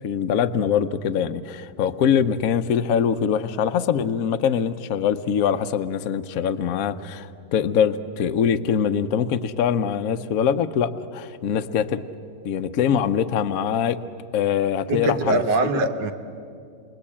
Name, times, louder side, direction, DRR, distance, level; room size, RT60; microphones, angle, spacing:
voice 1, 0.0-12.0 12.4-14.0 14.3-15.4 15.7-15.8, left 8 dB, 60° left, 10 dB, 1.1 m, -23 dB
voice 2, 14.9-16.1, right 2 dB, 80° right, 7 dB, 1.9 m, -22 dB
28.5 x 22.0 x 8.6 m, 2.4 s
omnidirectional pair, 1.9 m